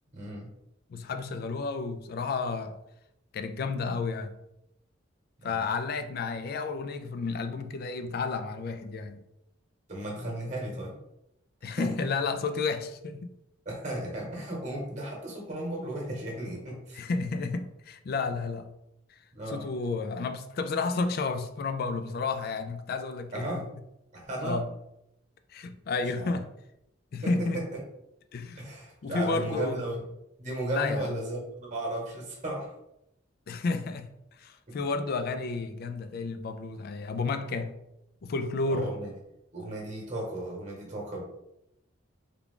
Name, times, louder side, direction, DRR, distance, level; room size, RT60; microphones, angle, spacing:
voice 1, 0.1-0.5 5.4-5.7 9.9-10.9 11.8-12.1 13.6-17.0 19.3-19.7 23.3-23.7 24.1-24.6 26.1-26.4 27.2-27.8 28.6-30.0 30.4-32.7 34.7-34.8 38.7-39.1 39.5-41.2, right 1 dB, 35° right, 1.1 m, -35 dB
voice 2, 0.9-2.8 3.3-4.4 5.4-9.2 11.6-13.3 16.9-18.7 19.1-19.2 19.5-23.6 24.4-24.7 25.5-26.5 27.1-27.6 28.3-28.6 29.0-29.8 30.7-31.2 33.5-37.7 38.2-38.9, left 4 dB, 50° left, 0.3 m, -31 dB
3.5 x 2.3 x 3.6 m
head